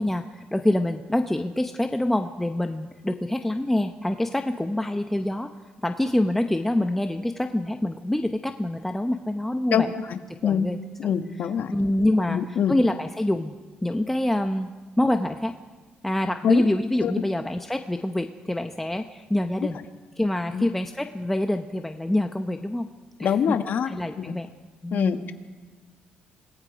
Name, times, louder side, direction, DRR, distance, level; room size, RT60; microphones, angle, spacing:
voice 1, 0.0-5.5 5.8-9.9 10.4-11.1 11.7-13.5 13.8-14.7 15.0-15.6 16.0-19.8 20.2-22.9 23.2-23.6 23.9-24.5 24.8-25.2, left 1 dB, 5° left, 6 dB, 0.8 m, -26 dB
voice 2, 10.1-10.7 11.0-11.7 12.3-12.8 16.4-16.6 17.0-17.1 20.5-20.7 23.2-23.9 24.2-24.4 24.9-25.3, left 8 dB, 60° left, 8 dB, 1.4 m, -24 dB
27.0 x 19.0 x 5.2 m, 1.4 s
cardioid pair, 110°, 4 cm